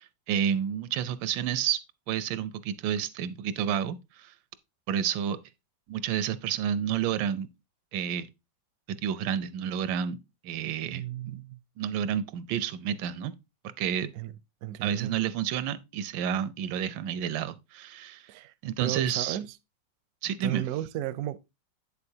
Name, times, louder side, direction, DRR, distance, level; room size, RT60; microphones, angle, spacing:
voice 1, 0.0-1.8 2.1-4.3 4.9-5.4 5.9-7.5 7.9-8.3 8.9-11.4 11.8-13.3 13.8-14.1 14.8-18.3 18.6-19.4 20.2-20.7, right 9 dB, 90° right, 1.4 m, -30 dB
voice 2, 10.9-11.6 14.2-14.3 14.6-15.2 18.3-18.5 18.8-19.6 20.4-21.4, right 13 dB, 70° right, 0.9 m, -34 dB
8.4 x 6.8 x 2.7 m
omnidirectional pair, 2.0 m